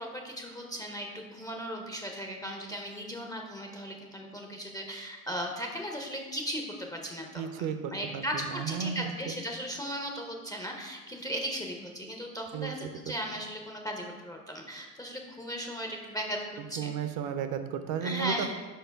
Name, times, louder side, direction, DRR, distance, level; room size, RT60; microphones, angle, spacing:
voice 1, 0.0-16.9 18.0-18.5, equal, 10° left, 1 dB, 0.4 m, -37 dB
voice 2, 7.3-9.3 12.5-13.1 16.6-18.5, right 7 dB, 45° right, 9 dB, 0.5 m, -34 dB
4.9 x 4.5 x 4.5 m, 1.4 s
hypercardioid pair, 95°, 48 cm